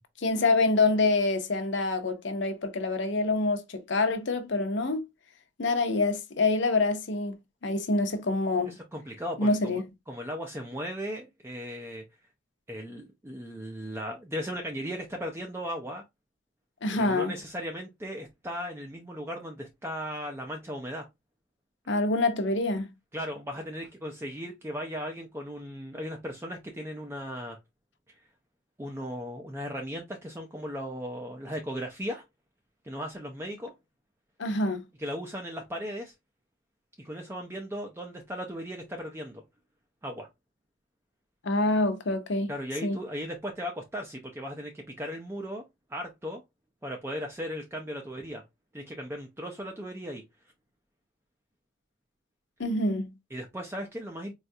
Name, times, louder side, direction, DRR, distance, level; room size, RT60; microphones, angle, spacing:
voice 1, 0.2-5.0 5.6-7.3 7.6-8.7 9.4-9.8 16.8-17.3 21.9-22.9 34.4-34.8 41.4-42.5 42.8-43.0 52.6-53.1, left 2 dB, 60° left, 0.7 m, -26 dB
voice 2, 8.7-9.8 10.1-12.0 12.7-16.0 16.9-21.1 23.1-27.6 28.8-32.2 32.8-33.7 35.0-36.1 37.0-39.4 40.0-40.3 42.5-45.6 45.9-46.4 46.8-48.4 48.7-50.2 53.3-54.3, equal, 10° right, 0.4 m, -37 dB
4.2 x 2.3 x 2.6 m
head